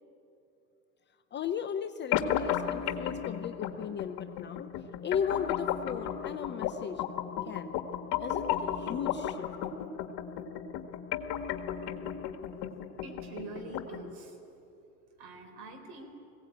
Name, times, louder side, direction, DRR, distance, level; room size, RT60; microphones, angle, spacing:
voice 1, 1.3-7.0 7.4-7.7 8.2-9.5, left 8 dB, 25° left, 8 dB, 0.6 m, -36 dB
sound 1, 2.1-14.1, left 9 dB, 50° left, 1.7 m, -34 dB
voice 2, 13.0-14.4 15.2-16.1, right 3 dB, 55° right, 5 dB, 4.3 m, -45 dB
20.5 x 17.0 x 8.7 m, 2.8 s
hypercardioid pair, 90°, 48 cm